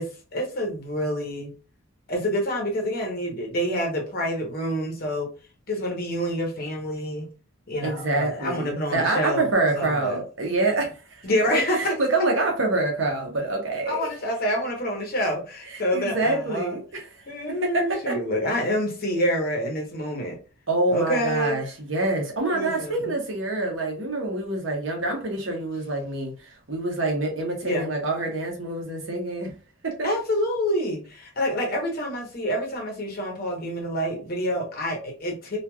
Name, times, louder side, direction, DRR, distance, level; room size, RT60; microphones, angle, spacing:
voice 1, 0.0-1.5 2.1-5.3 5.7-7.3 7.7-9.5 9.7-10.2 11.2-12.0 13.9-16.8 17.3-20.4 20.9-21.6 22.5-23.1 27.6-27.9 30.0-35.6, equal, 45° left, 0.9 m, -27 dB
voice 2, 7.8-14.0 15.7-17.0 17.5-18.2 20.7-29.5 29.8-30.1, right 2 dB, 60° right, 0.9 m, -26 dB
3.1 x 2.4 x 2.2 m
head